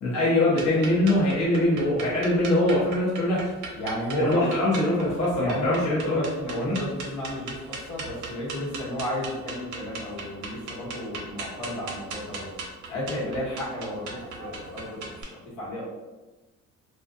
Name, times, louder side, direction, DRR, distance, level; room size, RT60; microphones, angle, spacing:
voice 1, 0.0-3.4 4.2-6.2 6.6-6.8, left 1 dB, 55° left, -7 dB, 0.8 m, -23 dB
sound 1, 0.5-15.2, right 3 dB, 75° right, 0.6 m, -38 dB
voice 2, 3.7-4.5 5.4-12.5 12.9-15.8, equal, 85° left, -7 dB, 1.1 m, -33 dB
2.6 x 2.3 x 2.3 m, 1.2 s
cardioid pair, 90°, 30 cm